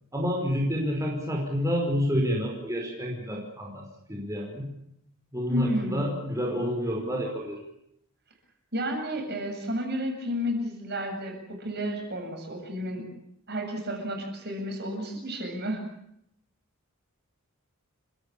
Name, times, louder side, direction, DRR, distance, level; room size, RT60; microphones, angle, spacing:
voice 1, 0.1-4.7 5.3-7.6, equal, 15° right, -1 dB, 5.2 m, -29 dB
voice 2, 5.5-6.2 8.7-13.1 13.5-15.8, equal, 45° right, 3 dB, 7.8 m, -31 dB
30.0 x 17.0 x 8.7 m, 0.76 s
head